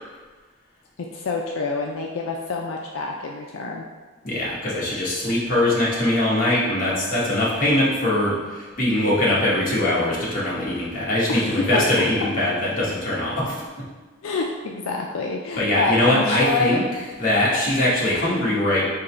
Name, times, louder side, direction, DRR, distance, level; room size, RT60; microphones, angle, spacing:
voice 1, 1.0-3.8 11.3-12.0 14.2-16.8, left 3 dB, 80° left, 0 dB, 0.4 m, -27 dB
voice 2, 4.2-8.3 8.8-13.5 15.6-16.8 17.2-18.9, left 1 dB, 40° left, -7 dB, 1.2 m, -21 dB
3.8 x 2.9 x 4.3 m, 1.3 s
head